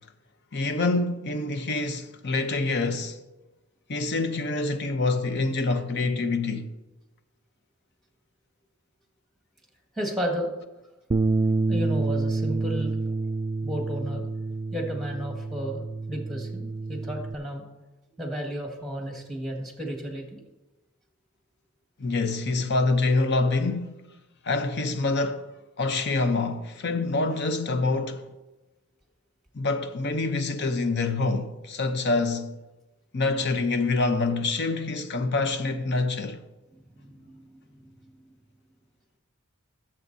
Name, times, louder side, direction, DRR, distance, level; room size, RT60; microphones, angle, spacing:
voice 1, 0.5-3.2 3.9-6.7 22.0-24.0 24.4-25.5 25.8-28.3 29.5-32.6 33.1-36.4, left 3 dB, 50° left, 0.7 m, -26 dB
voice 2, 9.9-10.5 11.7-13.0 13.6-14.2 14.7-15.8 16.1-17.6 18.2-20.4 37.0-37.2, equal, ahead, 1.8 m, -32 dB
Bass guitar, 11.1-17.4, right 3 dB, 25° right, 0.3 m, -28 dB
17.0 x 7.5 x 2.7 m
head